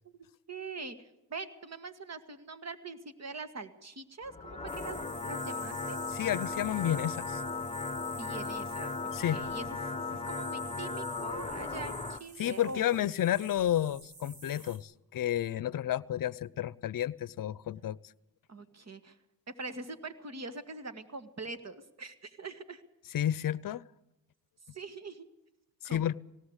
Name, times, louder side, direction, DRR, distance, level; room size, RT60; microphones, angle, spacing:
voice 1, 0.1-6.0 8.2-8.9 9.3-13.0 18.5-19.2 19.6-22.8 24.7-25.3 25.8-26.1, right 3 dB, 45° right, 10 dB, 2.1 m, -43 dB
sound 1, 4.2-12.2, left 4 dB, 15° left, 1.1 m, -37 dB
sound 2, 4.7-14.8, right 3 dB, 85° right, 6.6 m, -49 dB
voice 2, 6.1-7.4 9.1-9.4 10.1-10.2 12.4-18.0 23.1-23.8 25.8-26.1, left 11 dB, 60° left, 22 dB, 0.7 m, -31 dB
18.0 x 18.0 x 8.2 m, 0.91 s
cardioid pair, 70°, 37 cm